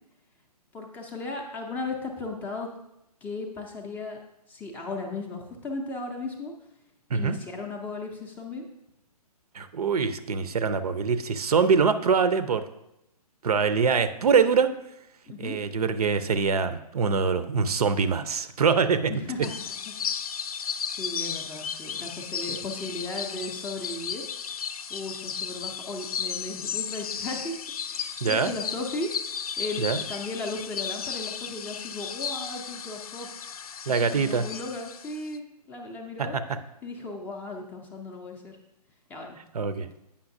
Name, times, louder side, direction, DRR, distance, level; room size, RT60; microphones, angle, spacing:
voice 1, 0.7-2.7 3.2-4.2 4.5-6.5 7.1-8.6 15.3-15.6 19.1-19.5 19.9-20.0 20.6-24.2 24.9-27.6 27.9-29.1 29.6-33.3 34.0-36.4 36.8-38.6 39.1-39.4, left 3 dB, 10° left, 1 dB, 0.4 m, -36 dB
voice 2, 9.5-12.6 13.4-14.7 15.4-19.1 28.2-28.5 29.8-30.0 33.9-34.4 36.2-36.4 39.5-39.9, right 5 dB, 70° right, 12 dB, 0.6 m, -24 dB
sound 1, 19.4-35.4, left 7 dB, 65° left, 0.5 m, -34 dB
8.6 x 5.6 x 2.6 m, 0.86 s
hypercardioid pair, 140°, 20 cm